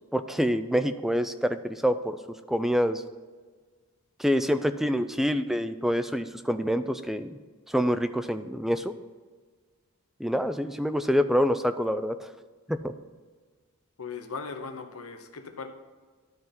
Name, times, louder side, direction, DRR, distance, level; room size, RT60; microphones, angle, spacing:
voice 1, 0.1-2.2 2.5-3.0 4.2-7.3 7.7-8.9 10.2-12.3 12.7-12.9, equal, ahead, 11 dB, 0.3 m, -26 dB
voice 2, 14.0-15.7, left 5 dB, 90° left, 6 dB, 1.0 m, -38 dB
12.0 x 4.0 x 5.8 m, 1.5 s
head